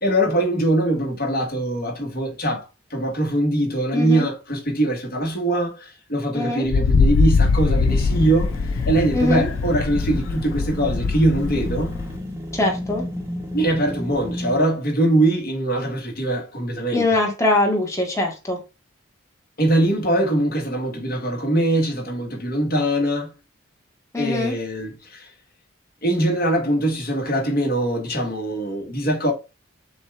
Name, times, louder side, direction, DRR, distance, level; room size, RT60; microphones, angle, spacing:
voice 1, 0.0-2.6 2.9-8.5 8.8-11.9 13.5-17.0 19.6-23.3 24.2-25.3 26.0-29.3, right 1 dB, 50° left, 1.4 m, -22 dB
voice 2, 3.9-4.2 6.3-6.7 9.1-9.5 12.5-13.0 16.9-18.6 24.1-24.6, left 2 dB, 15° left, 1.1 m, -22 dB
Wind, 6.7-12.2, left 4 dB, 90° left, 0.3 m, -22 dB
sound 1, 7.9-14.6, equal, 15° right, 0.9 m, -32 dB
6.9 x 2.3 x 3.2 m
head